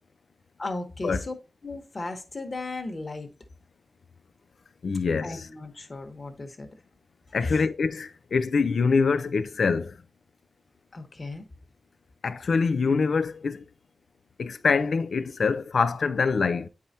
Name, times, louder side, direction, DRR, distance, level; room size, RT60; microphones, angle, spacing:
voice 1, 0.6-1.3 1.6-3.3 5.2-6.7 7.4-7.6 10.9-11.5, left 2 dB, 40° left, 1.2 m, -35 dB
voice 2, 4.8-5.5 7.3-10.0 12.2-13.6 14.4-16.7, left 5 dB, 80° left, 0.5 m, -25 dB
8.9 x 4.8 x 2.8 m
wide cardioid pair, 90°, 0 cm